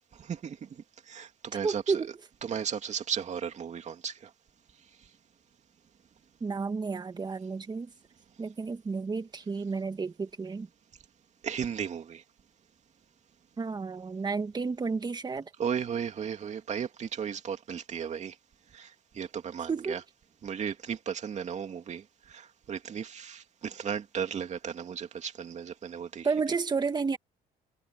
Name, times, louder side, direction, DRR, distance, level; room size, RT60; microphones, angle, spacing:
voice 1, 0.2-0.6 1.1-2.0 2.4-4.3 11.4-12.2 15.6-18.3 18.7-20.0 20.4-22.0 22.3-26.3, right 7 dB, 45° right, 2.6 m, -35 dB
voice 2, 1.6-2.1 6.4-7.9 8.4-10.7 13.6-15.5 19.7-20.0 26.2-27.2, right 4 dB, 25° right, 1.9 m, -31 dB
cardioid pair, 110°, 17 cm